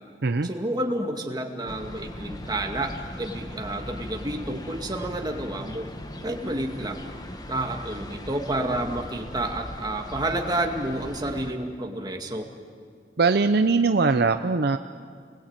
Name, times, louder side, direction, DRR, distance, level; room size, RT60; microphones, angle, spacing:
voice 1, 0.4-5.9 6.2-7.0 7.5-12.5, right 1 dB, 25° right, 2 dB, 2.2 m, -30 dB
sound 1, 1.7-11.5, left 1 dB, 20° left, 1.4 m, -39 dB
voice 2, 13.2-14.8, right 4 dB, 60° right, 8 dB, 0.7 m, -21 dB
27.5 x 21.0 x 9.0 m, 2.1 s
head